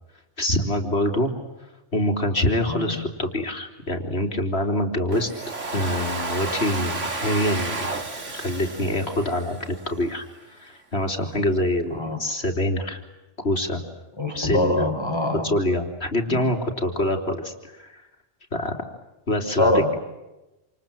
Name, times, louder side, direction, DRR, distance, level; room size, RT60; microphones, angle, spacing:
voice 1, 0.4-1.3 1.9-5.3 5.7-8.0 8.3-10.2 10.6-13.0 13.4-13.8 14.3-14.9 15.4-18.0 18.5-18.8 19.3-20.0, left 1 dB, 60° left, 3 dB, 3.6 m, -25 dB
Domestic sounds home sounds, 5.1-10.1, right 3 dB, 90° right, 2.8 m, -31 dB
voice 2, 14.2-15.5 16.3-16.5 19.5-20.0, left 1 dB, 20° left, 4 dB, 4.3 m, -24 dB
28.0 x 28.0 x 7.6 m, 1.0 s
omnidirectional pair, 1.2 m